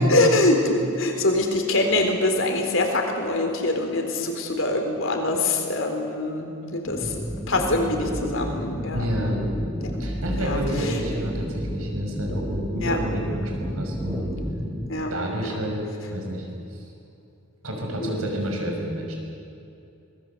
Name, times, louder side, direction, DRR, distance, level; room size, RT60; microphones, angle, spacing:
voice 1, 0.0-7.2 7.5-9.5 9.8-9.9 10.3-11.0 12.8-13.0 14.9-15.1 15.5-15.6 18.0-18.3, left 2 dB, 65° left, 3 dB, 3.9 m, -24 dB
sound 1, 6.9-14.9, equal, 5° right, 3.5 m, -31 dB
voice 2, 8.9-9.4 10.0-14.3 15.1-16.9 17.6-19.2, equal, 90° right, 1 dB, 6.0 m, -29 dB
25.0 x 20.5 x 8.0 m, 2.7 s
head